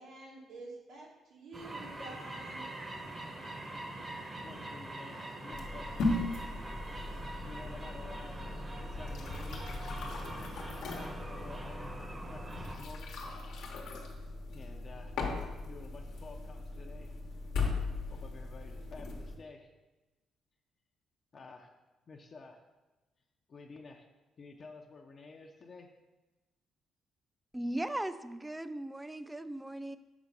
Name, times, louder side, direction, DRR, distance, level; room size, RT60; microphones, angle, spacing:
voice 1, 0.0-2.7, right 2 dB, 80° right, -4 dB, 2.1 m, -49 dB
sound 1, 1.5-12.8, right 1 dB, 25° right, 1.0 m, -44 dB
voice 2, 4.2-6.2 7.5-9.7 10.8-13.3 14.5-15.1 15.6-17.1 18.1-19.7 21.3-21.7 22.1-22.6 23.5-24.1 24.4-25.9, left 4 dB, 45° left, 2 dB, 0.7 m, -51 dB
sound 2, 5.5-19.3, left 3 dB, 80° left, 1.1 m, -38 dB
voice 3, 27.5-30.0, right 1 dB, 10° right, 12 dB, 0.4 m, -38 dB
6.0 x 4.3 x 5.4 m, 1.1 s
cardioid pair, 90°, 0 cm